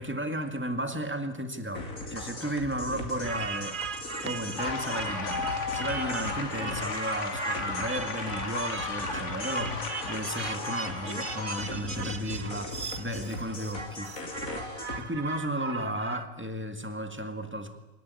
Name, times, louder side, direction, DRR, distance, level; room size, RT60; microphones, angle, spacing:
voice 1, 0.0-3.8 4.2-14.2 15.0-17.8, right 1 dB, 10° right, 1.9 m, -34 dB
sound 1, 1.8-15.0, left 2 dB, 80° left, 3.4 m, -39 dB
sound 2, 3.2-16.3, right 5 dB, 40° right, 1.2 m, -38 dB
sound 3, 4.6-11.8, left 4 dB, 60° left, 2.1 m, -35 dB
25.5 x 18.5 x 9.6 m
omnidirectional pair, 1.4 m